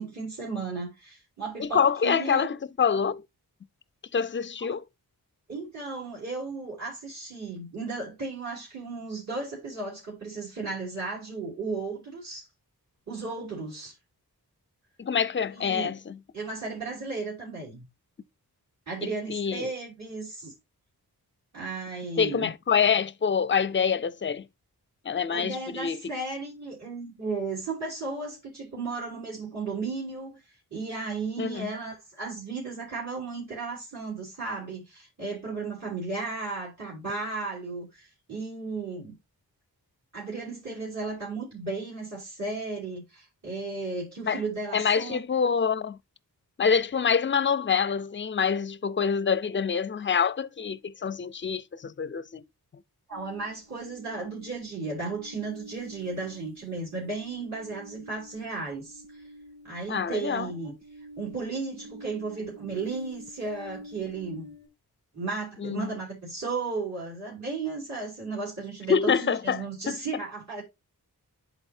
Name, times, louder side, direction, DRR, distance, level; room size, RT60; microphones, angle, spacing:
voice 1, 0.0-2.5 5.5-12.5 13.1-13.9 15.5-16.0 16.3-17.9 18.9-20.5 21.5-22.5 25.3-30.4 30.7-39.1 40.1-45.2 53.1-59.2 59.6-60.7 61.2-64.5 65.1-70.6, right 3 dB, 50° right, 3.2 m, -35 dB
voice 2, 1.6-3.2 4.1-4.8 15.0-16.2 19.0-19.7 22.2-24.4 25.1-26.0 31.4-31.7 44.2-44.4 44.7-46.0 46.6-52.4 59.9-60.5 65.6-65.9 68.9-70.0, left 6 dB, 30° left, 0.4 m, -26 dB
sound 1, 53.1-64.7, equal, 70° right, 3.1 m, -48 dB
10.5 x 4.0 x 2.6 m
cardioid pair, 55°, 38 cm